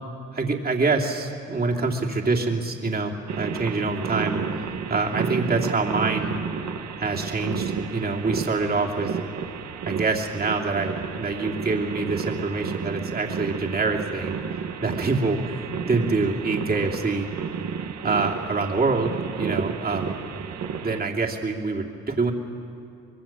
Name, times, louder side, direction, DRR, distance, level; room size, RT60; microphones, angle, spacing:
voice 1, 0.3-4.4 4.9-6.3 7.0-9.2 9.8-14.4 14.8-17.3 18.0-19.1 19.4-20.2 20.8-22.3, right 3 dB, 30° right, 0 dB, 2.9 m, -25 dB
sound 1, 3.3-21.0, right 7 dB, 65° right, 1.6 m, -32 dB
25.0 x 21.5 x 7.4 m, 2.7 s
cardioid pair, 90°, 30 cm